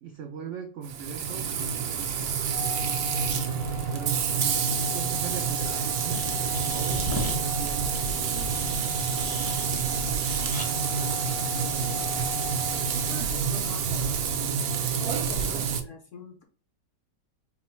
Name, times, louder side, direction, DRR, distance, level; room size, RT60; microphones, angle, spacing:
voice 1, 0.0-3.5 3.9-4.3 4.9-6.3 6.7-10.0 10.5-11.2 11.7-12.1 13.1-13.3 15.4-15.6, right 7 dB, 85° right, 4 dB, 0.6 m, -42 dB
Frying (food), 0.8-15.8, right 6 dB, 70° right, 0.9 m, -28 dB
Organ, 2.5-13.3, left 10 dB, 75° left, 1.2 m, -41 dB
sound 1, 6.1-7.4 7.9-9.7 10.2-10.7, left 1 dB, 25° left, 0.5 m, -37 dB
voice 2, 12.9-14.4 15.0-16.4, left 5 dB, 60° left, 2 dB, 0.9 m, -44 dB
4.5 x 2.0 x 4.3 m, 0.38 s
omnidirectional pair, 1.9 m